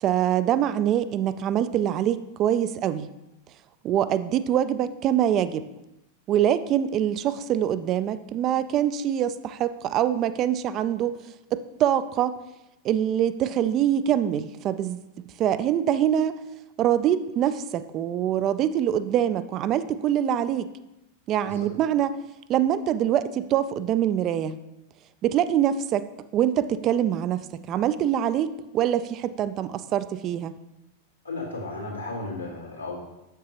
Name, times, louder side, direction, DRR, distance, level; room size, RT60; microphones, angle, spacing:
voice 1, 0.0-3.1 3.8-5.7 6.3-11.1 11.5-12.4 12.8-15.0 15.4-16.4 16.8-20.7 21.3-22.2 22.5-24.6 25.2-30.5, right 10 dB, 35° right, 14 dB, 0.3 m, -24 dB
voice 2, 31.2-33.0, left 2 dB, 90° left, -7 dB, 2.2 m, -34 dB
7.4 x 6.7 x 2.9 m, 0.92 s
figure-of-eight pair, 90°, 0 cm